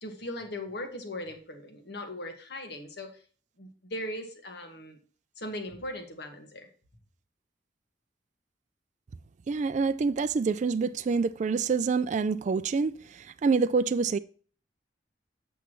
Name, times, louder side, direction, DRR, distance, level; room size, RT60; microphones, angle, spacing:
voice 1, 0.0-3.2 3.6-5.0 5.4-6.7, left 1 dB, 65° left, 1.6 m, -39 dB
voice 2, 9.5-14.2, right 4 dB, 40° right, 0.3 m, -27 dB
8.1 x 7.0 x 3.1 m
head